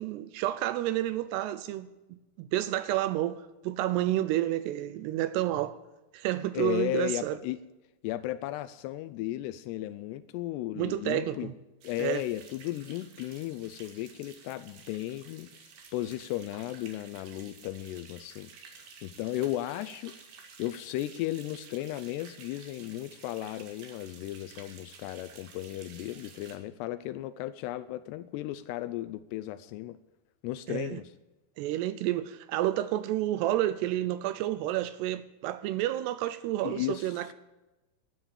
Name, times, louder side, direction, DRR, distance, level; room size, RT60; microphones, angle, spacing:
voice 1, 0.0-5.8 6.1-7.4 10.8-11.5 12.0-12.2 30.7-31.0 31.6-37.3, right 14 dB, 80° right, 2.5 m, -30 dB
voice 2, 6.5-7.6 8.0-11.5 11.8-15.5 15.9-18.5 19.0-20.2 20.6-30.0 30.4-31.1 36.6-37.2, left 14 dB, 85° left, 2.4 m, -35 dB
sound 1, 11.8-26.6, right 5 dB, 60° right, 3.5 m, -52 dB
12.5 x 9.7 x 8.7 m
omnidirectional pair, 5.3 m